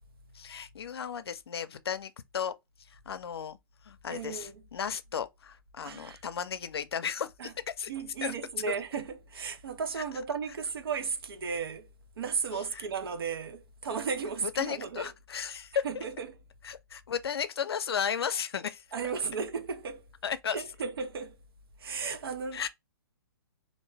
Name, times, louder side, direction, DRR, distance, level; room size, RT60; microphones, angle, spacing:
voice 1, 0.3-2.5 2.9-3.6 3.8-7.3 7.8-7.9 8.2-8.3 8.7-8.8 12.5-12.8 14.4-16.0 16.6-18.8 20.2-20.6 22.5-22.7, left 7 dB, 90° left, 0.5 m, -34 dB
voice 2, 4.1-4.6 5.8-6.2 7.4-7.5 7.9-11.9 12.2-15.1 15.8-16.4 18.9-20.1 20.5-21.4 21.8-22.6, right 5 dB, 75° right, 0.6 m, -35 dB
2.5 x 2.2 x 3.2 m
hypercardioid pair, 150°, 13 cm